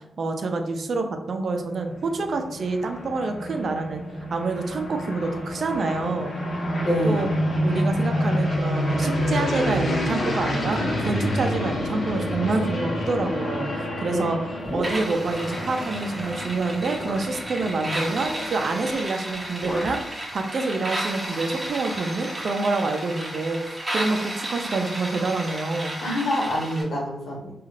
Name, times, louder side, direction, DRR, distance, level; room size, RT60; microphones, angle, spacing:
voice 1, 0.0-4.0 4.3-6.3 7.0-7.3 7.6-14.4 14.7-26.0, right 3 dB, 60° right, 5 dB, 0.4 m, -27 dB
sound 1, 1.8-18.9, equal, 60° left, 0.8 m, -28 dB
voice 2, 6.8-7.3 14.1-14.3 26.0-27.5, left 1 dB, 75° left, -4 dB, 1.1 m, -26 dB
sound 2, 14.6-15.4 16.3-16.4 16.9-17.4 18.8-19.1 19.3-20.1, left 1 dB, 15° left, 0.5 m, -36 dB
sound 3, 14.8-26.8, right 1 dB, 20° right, 0.8 m, -33 dB
3.1 x 2.4 x 2.4 m, 0.93 s
cardioid pair, 80°, 0 cm